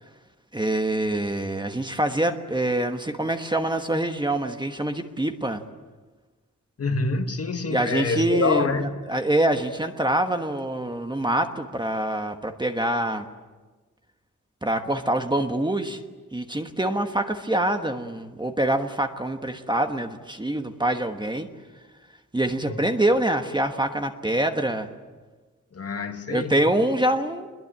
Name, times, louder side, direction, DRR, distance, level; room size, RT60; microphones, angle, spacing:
voice 1, 0.5-5.6 7.7-13.3 14.6-16.0 16.3-21.5 22.3-24.9 26.3-27.5, right 1 dB, 15° right, 1.3 m, -25 dB
voice 2, 6.8-8.9 22.7-22.8 25.7-26.6, left 3 dB, 45° left, 1.6 m, -26 dB
26.5 x 22.0 x 8.8 m
wide cardioid pair, 175°, 32 cm